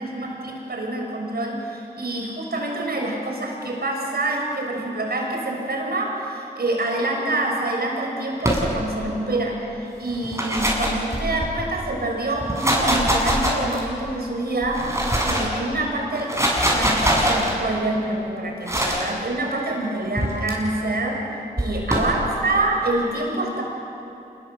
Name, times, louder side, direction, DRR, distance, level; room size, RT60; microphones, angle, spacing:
voice 1, 0.0-21.2 21.6-23.6, right 2 dB, 65° right, 0 dB, 6.3 m, -26 dB
sound 1, 8.4-9.1 10.1-11.6 12.4-14.0 14.6-15.6 16.1-17.5 18.7-19.1 20.2-20.5 21.6-22.2, equal, 15° right, 7.4 m, -23 dB
26.0 x 21.0 x 8.0 m, 2.9 s
cardioid pair, 45°, 18 cm